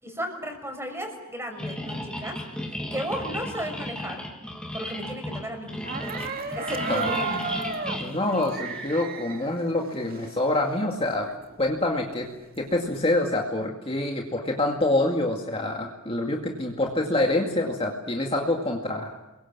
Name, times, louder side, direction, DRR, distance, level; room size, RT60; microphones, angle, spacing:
voice 1, 0.0-2.4 2.9-4.2 4.7-5.7 6.5-7.4, equal, 10° right, 4 dB, 6.0 m, -34 dB
sound 1, 1.6-9.0, left 1 dB, 5° left, 3.1 m, -35 dB
sound 2, 5.8-10.4 10.8-10.9 11.0-12.9, right 4 dB, 45° right, 2.4 m, -33 dB
voice 2, 8.0-11.3 11.6-12.3 12.6-19.2, left 2 dB, 25° left, 1 dB, 2.3 m, -26 dB
29.5 x 23.0 x 7.5 m, 1.0 s
head